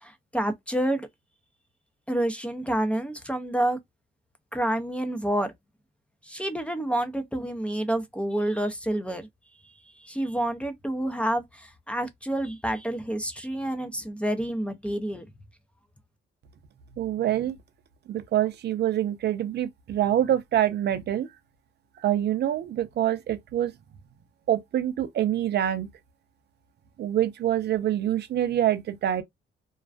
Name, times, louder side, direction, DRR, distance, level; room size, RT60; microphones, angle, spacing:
voice 1, 0.0-1.1 2.1-3.8 4.5-5.5 6.2-9.3 10.0-15.2, right 1 dB, 5° left, 0.5 m, -28 dB
voice 2, 17.0-17.5 18.1-21.3 22.0-23.7 24.5-25.9 27.0-29.2, right 11 dB, 60° right, 0.5 m, -25 dB
2.3 x 2.2 x 2.4 m
cardioid pair, 90°, 20 cm